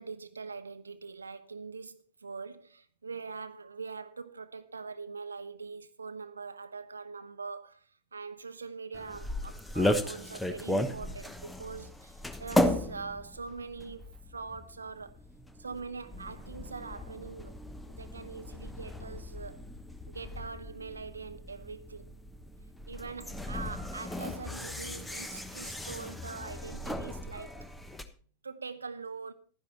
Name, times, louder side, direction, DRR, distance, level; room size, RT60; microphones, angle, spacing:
voice 1, 0.0-7.9 8.1-14.0 14.3-15.1 15.6-17.5 18.0-19.6 20.1-22.2 22.9-27.6 28.4-29.3, right 4 dB, 75° right, 0.8 m, -43 dB
sound 1, 8.9-28.0, left 1 dB, 5° left, 1.1 m, -36 dB
12.0 x 10.5 x 4.2 m
figure-of-eight pair, 90°, 0 cm